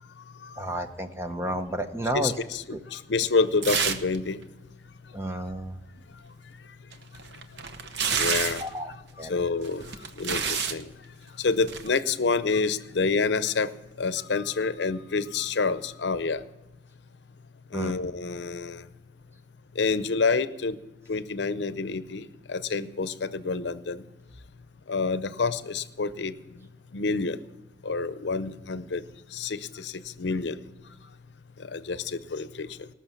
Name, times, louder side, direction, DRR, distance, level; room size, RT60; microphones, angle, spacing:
voice 1, 0.6-2.3 2.7-2.8 5.1-5.8 8.6-9.4 17.7-17.9, right 1 dB, 15° right, 7 dB, 0.8 m, -31 dB
voice 2, 2.1-2.6 2.9-4.4 8.2-8.6 9.3-10.9 11.4-13.7 14.0-16.4 17.7-18.8 19.8-20.8 21.1-24.0 24.9-26.3 26.9-27.4 27.8-29.0 29.3-29.9 30.2-30.6 31.7-32.9, left 4 dB, 80° left, 14 dB, 0.6 m, -28 dB
sound 1, 3.6-4.2 4.4-4.5 6.9-8.7 9.6-10.8 11.6-11.9, right 6 dB, 75° right, 0.9 m, -28 dB
19.0 x 6.3 x 7.0 m, 1.1 s
head